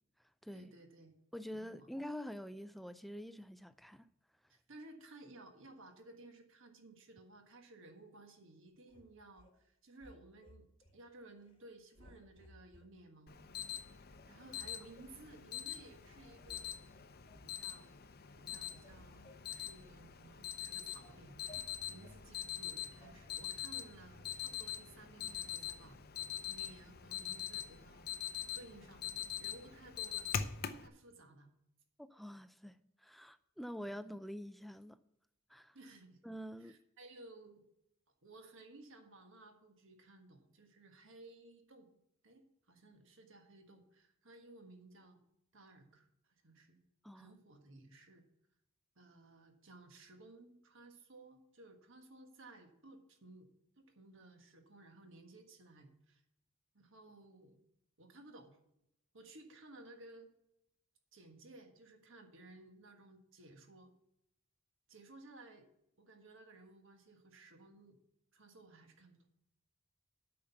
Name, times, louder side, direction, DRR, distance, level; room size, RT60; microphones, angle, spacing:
voice 1, 0.5-1.1 1.5-1.9 4.5-13.4 14.2-16.8 17.4-17.9 18.3-21.4 21.9-26.0 26.5-28.1 28.5-30.3 30.8-31.5 35.7-36.2 36.6-37.6 38.2-41.9 42.2-45.2 45.5-46.8 47.1-48.2 48.9-53.5 53.8-56.2 56.7-57.6 58.0-58.6 59.1-60.3 61.1-63.9 64.9-65.7 66.0-68.0 68.3-69.2, right 2 dB, 65° right, 1.5 m, -57 dB
voice 2, 1.3-4.1 32.0-35.0 35.5-35.8 36.2-36.8 47.0-47.3, equal, ahead, 0.4 m, -46 dB
sound 1, 8.9-9.5 10.0-11.0 11.4-11.6 11.9-12.9 13.4-13.5 14.0-15.2 15.8-15.9 16.2-16.6 16.9-17.5 18.0-18.3 18.5-20.3 20.7-22.2 23.0-23.1, left 1 dB, 25° left, 1.2 m, -62 dB
Alarm, 13.3-30.9, left 9 dB, 50° left, 0.7 m, -44 dB
8.5 x 5.8 x 7.0 m
head